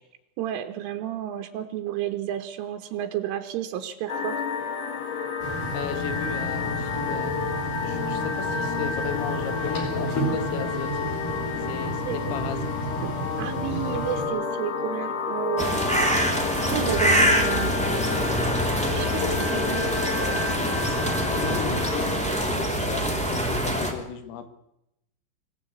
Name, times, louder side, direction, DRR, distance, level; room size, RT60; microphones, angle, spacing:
voice 1, 0.4-4.4 12.1-12.4 13.0-15.8 16.6-18.3 18.9-19.9 21.5-21.8, right 11 dB, 80° right, 5 dB, 3.6 m, -32 dB
sound 1, 4.1-22.2, left 5 dB, 65° left, 1.6 m, -30 dB
sound 2, 5.4-14.2, right 1 dB, 40° left, 5.5 m, -32 dB
voice 2, 5.7-7.4 7.8-10.9 11.7-12.6 19.2-21.0 21.3-24.5, left 8 dB, 85° left, 9 dB, 4.4 m, -36 dB
sound 3, 15.6-23.9, equal, 5° left, 1.1 m, -25 dB
24.5 x 16.5 x 8.4 m, 0.85 s
omnidirectional pair, 5.8 m